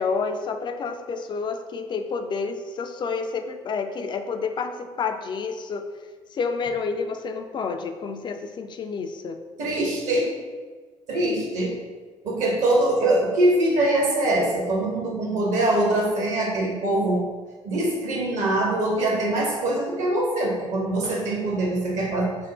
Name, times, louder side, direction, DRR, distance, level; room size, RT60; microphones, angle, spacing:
voice 1, 0.0-5.9 6.3-9.4, left 5 dB, 30° left, 7 dB, 0.3 m, -29 dB
voice 2, 9.6-10.3 11.1-11.7 12.2-17.2 17.6-22.4, right 1 dB, 55° right, -2 dB, 1.0 m, -23 dB
3.5 x 2.1 x 4.1 m, 1.4 s
figure-of-eight pair, 50°, 15 cm